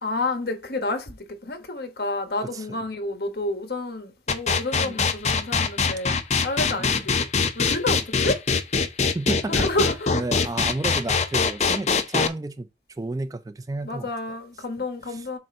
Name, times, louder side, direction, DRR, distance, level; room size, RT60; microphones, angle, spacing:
voice 1, 0.0-6.1 6.4-8.4 9.5-10.5 13.8-15.4, left 2 dB, 65° left, 1.3 m, -30 dB
voice 2, 2.4-2.8 4.8-5.1 6.8-7.0 9.0-9.6 10.1-14.1 15.1-15.2, right 2 dB, 20° right, 0.4 m, -32 dB
sound 1, 4.3-12.3, left 5 dB, 40° left, 0.6 m, -22 dB
7.6 x 2.6 x 5.3 m
head